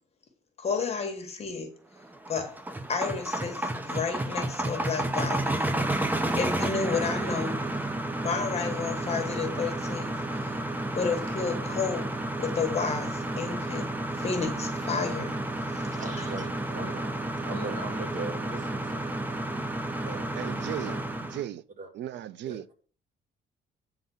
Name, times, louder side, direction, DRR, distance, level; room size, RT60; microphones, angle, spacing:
voice 1, 0.6-1.7 2.3-2.5 2.9-5.7 6.4-7.6 8.2-10.6 10.9-12.1 12.4-15.4 15.7-16.2, left 5 dB, 35° left, 1.3 m, -32 dB
sound 1, 2.0-21.4, right 1 dB, 10° right, 0.7 m, -31 dB
voice 2, 16.0-19.2 20.0-20.3 20.8-20.9 21.8-21.9 22.5-22.6, right 3 dB, 40° right, 2.1 m, -39 dB
voice 3, 20.4-21.6 21.9-22.7, right 12 dB, 75° right, 0.6 m, -37 dB
8.7 x 3.9 x 7.0 m
cardioid pair, 155°, 18 cm